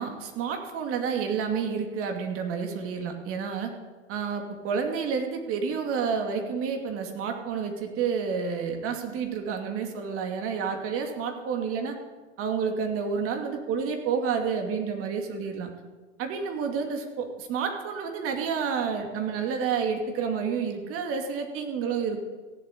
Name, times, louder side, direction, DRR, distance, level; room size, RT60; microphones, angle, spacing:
voice 1, 0.0-3.7 4.1-12.0 12.4-15.7 16.2-22.2, right 6 dB, 35° right, 4 dB, 2.6 m, -29 dB
16.0 x 7.8 x 8.9 m, 1.4 s
hypercardioid pair, 125°, 37 cm